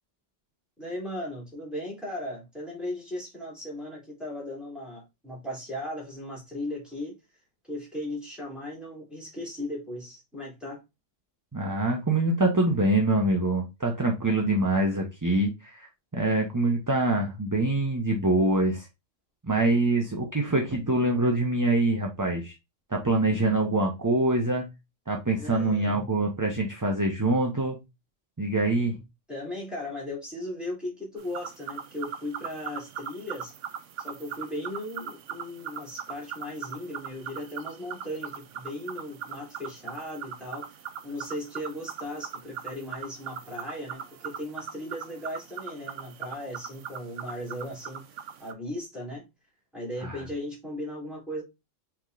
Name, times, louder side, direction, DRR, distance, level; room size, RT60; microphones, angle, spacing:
voice 1, 0.8-7.1 7.7-10.8 25.4-26.1 29.3-33.5 34.0-40.8 41.0-49.2 49.7-51.4, left 1 dB, ahead, 2.7 m, -37 dB
voice 2, 11.5-15.9 16.1-18.9 19.4-22.5 22.9-24.7 25.1-27.8 28.4-29.0 50.0-50.2, right 2 dB, 20° right, 0.7 m, -25 dB
sound 1, 31.2-48.5, right 8 dB, 75° right, 1.0 m, -40 dB
5.8 x 3.6 x 2.5 m
omnidirectional pair, 1.3 m